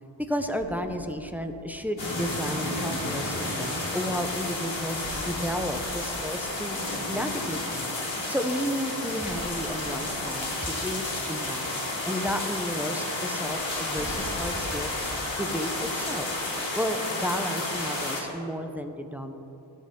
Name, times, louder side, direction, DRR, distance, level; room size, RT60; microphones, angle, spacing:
voice 1, 0.2-6.8 7.1-7.9 8.3-11.7 12.0-16.3 16.7-19.3, equal, 5° right, 6 dB, 0.7 m, -32 dB
sound 1, 0.6-2.5 5.0-7.4 9.3-11.5 13.5-16.5, left 1 dB, 50° left, 1.8 m, -44 dB
sound 2, 2.0-18.2, left 2 dB, 70° left, 2.3 m, -31 dB
18.0 x 6.4 x 3.7 m, 2.9 s
wide cardioid pair, 75°, 47 cm